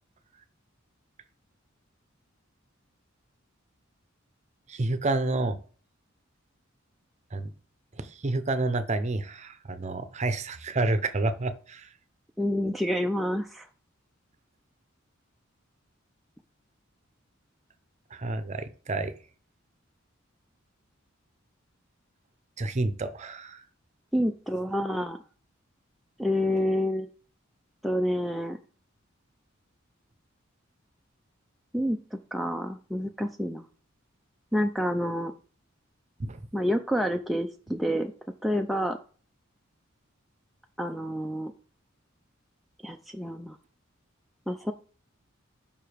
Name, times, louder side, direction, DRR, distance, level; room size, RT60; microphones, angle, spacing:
voice 1, 4.7-5.6 7.3-7.5 8.0-11.9 18.1-19.1 22.6-23.6 36.2-36.4, right 2 dB, 35° right, 11 dB, 0.7 m, -29 dB
voice 2, 12.4-13.7 24.1-25.2 26.2-27.1 27.8-28.6 31.7-33.6 34.5-35.3 36.5-38.1 38.4-39.0 40.8-41.5 42.8-43.6 44.5-44.7, equal, ahead, 3 dB, 0.4 m, -28 dB
5.5 x 4.8 x 5.0 m, 0.40 s
head